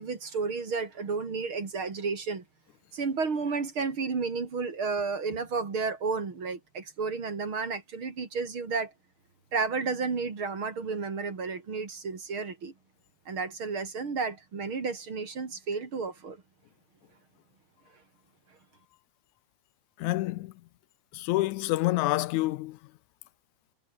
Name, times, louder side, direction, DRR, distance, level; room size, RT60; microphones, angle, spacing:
voice 1, 0.0-2.4 2.9-8.9 9.5-12.7 13.3-16.4, right 4 dB, 45° right, 3.8 m, -32 dB
voice 2, 20.0-20.5 21.1-22.8, left 18 dB, 80° left, 2.0 m, -27 dB
omnidirectional pair, 3.4 m